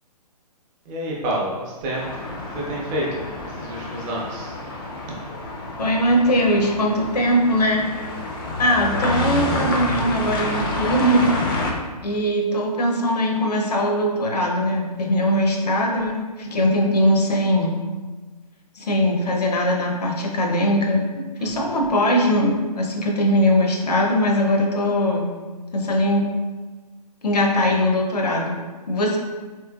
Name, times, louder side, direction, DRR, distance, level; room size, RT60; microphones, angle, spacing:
voice 1, 0.9-2.2 2.5-4.5 21.4-21.8, right 1 dB, 20° right, -3 dB, 0.5 m, -29 dB
sound 1, 1.9-11.7, left 2 dB, 35° left, 0.4 m, -28 dB
voice 2, 5.8-7.9 8.6-11.3 12.0-17.8 18.8-21.1 21.4-25.3 25.7-26.3 27.2-29.2, equal, 75° left, 1 dB, 0.7 m, -20 dB
3.2 x 3.0 x 2.2 m, 1.3 s
figure-of-eight pair, 135°, 20 cm